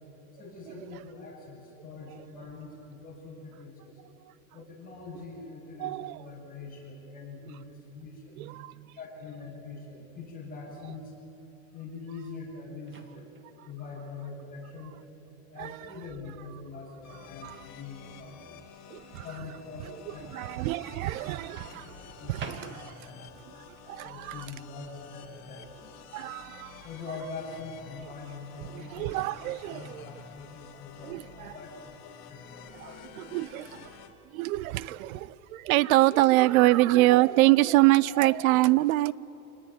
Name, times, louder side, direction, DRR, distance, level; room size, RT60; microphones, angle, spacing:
voice 1, 0.3-4.0 4.5-8.4 8.9-11.2 11.7-13.3 13.6-15.0 15.5-18.7 19.2-20.4 20.8-20.9 22.2-22.8 23.0-23.4 24.0-25.9 26.8-29.3 29.6-33.4 36.1-36.2 38.3-38.5, left 4 dB, 20° left, 7.3 m, -43 dB
voice 2, 5.8-6.2 8.4-8.9 15.6-15.7 17.4-17.6 18.9-19.2 20.3-21.9 22.3-22.9 23.9-24.5 26.1-26.8 28.7-30.1 31.0-31.5 32.8-32.9 33.2-33.9 34.3-39.1, right 18 dB, 75° right, 0.8 m, -25 dB
Microwave oven, 12.9-13.5 15.5-15.8 21.6-23.2, right 4 dB, 25° right, 2.0 m, -45 dB
sound 1, 17.0-34.1, left 7 dB, 40° left, 2.8 m, -50 dB
27.0 x 18.5 x 9.8 m
supercardioid pair, 150°, 43 cm